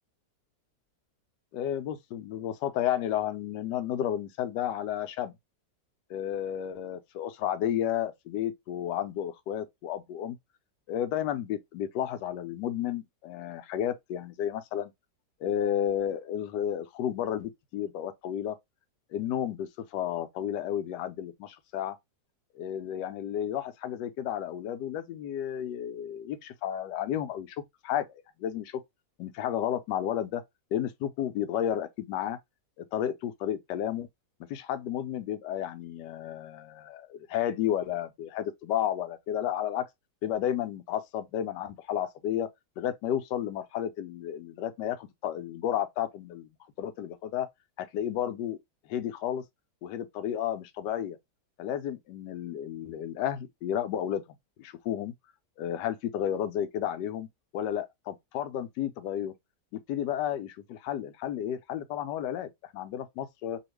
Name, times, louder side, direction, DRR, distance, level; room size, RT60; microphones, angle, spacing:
voice 1, 1.5-5.3 6.1-10.4 10.9-14.9 15.4-18.6 19.1-22.0 22.5-27.6 27.8-28.8 29.2-30.4 30.7-32.4 32.8-34.1 34.5-39.8 40.2-42.5 42.8-46.5 46.8-47.5 47.8-48.6 48.9-49.4 49.8-51.2 51.6-54.2 54.6-55.1 55.6-57.3 57.5-59.3 59.7-63.6, left 10 dB, 80° left, 1.2 m, -32 dB
2.9 x 2.4 x 3.0 m
omnidirectional pair, 1.9 m